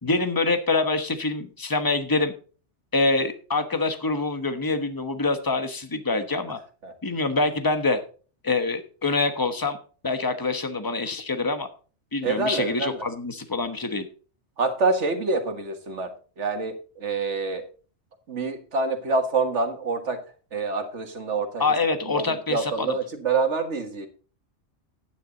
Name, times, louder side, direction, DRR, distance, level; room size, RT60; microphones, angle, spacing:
voice 1, 0.0-2.3 2.9-6.6 7.0-8.0 8.4-9.8 10.0-11.7 12.1-14.0 21.6-23.0, left 3 dB, 20° left, 8 dB, 1.1 m, -25 dB
voice 2, 12.2-13.0 14.6-16.1 16.4-17.7 18.3-20.2 20.5-21.7 22.0-24.1, right 4 dB, 80° right, 6 dB, 1.9 m, -26 dB
11.0 x 9.5 x 4.0 m, 0.38 s
omnidirectional pair, 1.2 m